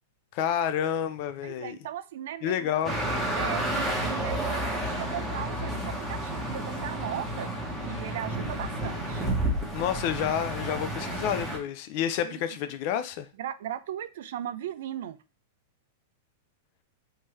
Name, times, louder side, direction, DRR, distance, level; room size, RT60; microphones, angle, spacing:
voice 1, 0.3-1.8 2.4-3.0 9.7-13.3, left 9 dB, 50° left, 0.4 m, -29 dB
voice 2, 1.4-2.7 3.4-7.5 7.9-9.2 12.2-12.4 13.4-15.2, right 11 dB, 70° right, 0.3 m, -37 dB
sound 1, 2.8-11.6, right 1 dB, 5° right, 1.2 m, -31 dB
3.6 x 2.7 x 3.2 m
hypercardioid pair, 130°, 0 cm